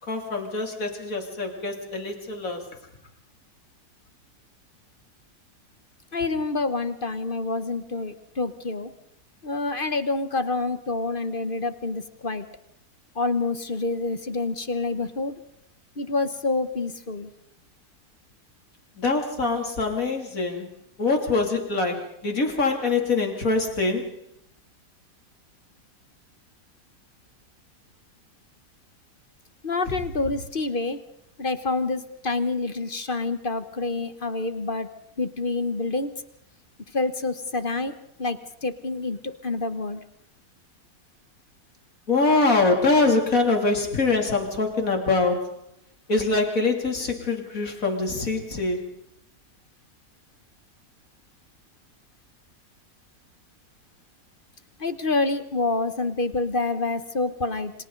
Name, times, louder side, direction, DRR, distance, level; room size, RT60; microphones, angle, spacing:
voice 1, 0.0-2.7 19.0-20.7 21.0-24.2 29.9-30.0 30.2-30.3 42.1-45.6 46.1-48.9, left 3 dB, 55° left, 3 dB, 3.5 m, -24 dB
voice 2, 6.1-8.9 9.4-12.5 13.1-15.4 16.0-17.3 29.6-31.0 31.4-34.9 35.2-36.1 36.9-40.0 54.8-57.7, left 3 dB, 35° left, 10 dB, 1.3 m, -27 dB
29.0 x 25.5 x 4.0 m, 0.72 s
omnidirectional pair, 1.8 m